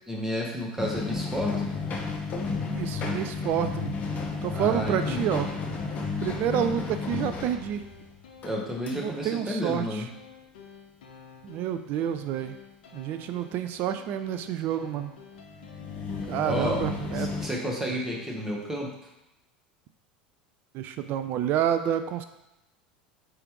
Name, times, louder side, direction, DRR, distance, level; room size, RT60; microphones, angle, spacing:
voice 1, 0.1-1.8 4.5-5.3 8.4-10.1 16.4-16.8 17.1-19.1, equal, 10° right, -2 dB, 1.0 m, -31 dB
sound 1, 0.8-8.5 8.9-9.0 15.4-17.5, left 4 dB, 35° left, 0.9 m, -32 dB
voice 2, 2.7-3.9 4.4-5.5 6.2-7.8 8.9-10.1 11.4-12.6 12.9-15.1 16.3-17.3 20.7-22.2, right 10 dB, 45° right, 9 dB, 0.3 m, -29 dB
sound 2, 5.5-18.4, left 7 dB, 70° left, 0.5 m, -49 dB
4.7 x 3.2 x 3.1 m, 0.93 s
figure-of-eight pair, 75°, 5 cm